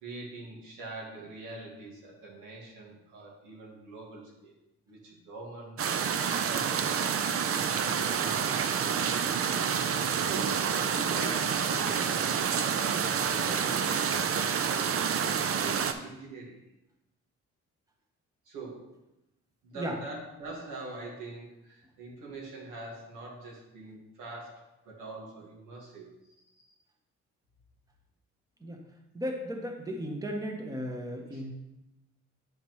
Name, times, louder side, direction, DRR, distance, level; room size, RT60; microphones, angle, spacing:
voice 1, 0.0-4.6 4.9-6.1 6.4-14.0 14.3-16.6 18.5-18.9 19.6-26.7 31.3-31.4, right 2 dB, 90° right, -3 dB, 1.9 m, -44 dB
sound 1, 5.8-15.9, right 7 dB, 50° right, 0.6 m, -28 dB
voice 2, 29.1-31.5, equal, 10° right, 2 dB, 1.0 m, -35 dB
8.5 x 5.1 x 3.1 m, 0.93 s
cardioid pair, 90°, 30 cm